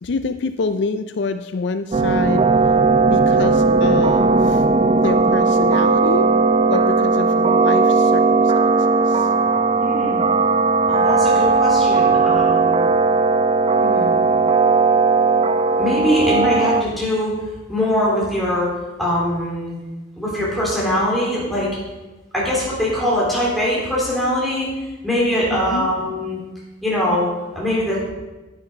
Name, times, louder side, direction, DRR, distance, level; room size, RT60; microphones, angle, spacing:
voice 1, 0.0-2.5 3.0-4.7 5.0-6.3 6.7-9.3 25.5-25.9, left 4 dB, 60° left, 10 dB, 0.4 m, -27 dB
sound 1, 1.9-16.8, right 4 dB, 30° right, 0.4 m, -17 dB
voice 2, 9.8-10.4 10.9-12.9 13.8-14.2 15.8-17.4 17.7-18.7 19.0-19.7 20.2-21.7 22.3-24.8 25.0-26.4 26.8-28.0, equal, ahead, -6 dB, 3.7 m, -22 dB
10.5 x 9.3 x 4.5 m, 1.1 s
head